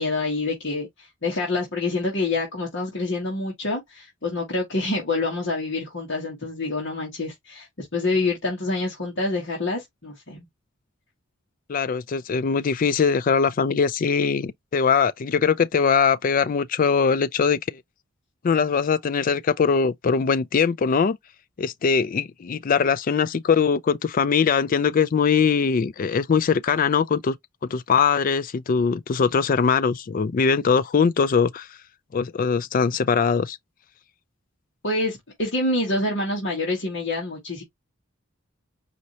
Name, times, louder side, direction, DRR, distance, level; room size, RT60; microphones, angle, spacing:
voice 1, 0.0-10.5 34.8-37.6, left 2 dB, 60° left, 1.7 m, -27 dB
voice 2, 11.7-17.8 18.4-21.2 21.6-27.4 27.6-31.7 32.1-33.6, left 6 dB, 45° left, 0.4 m, -21 dB
5.1 x 2.7 x 3.0 m
head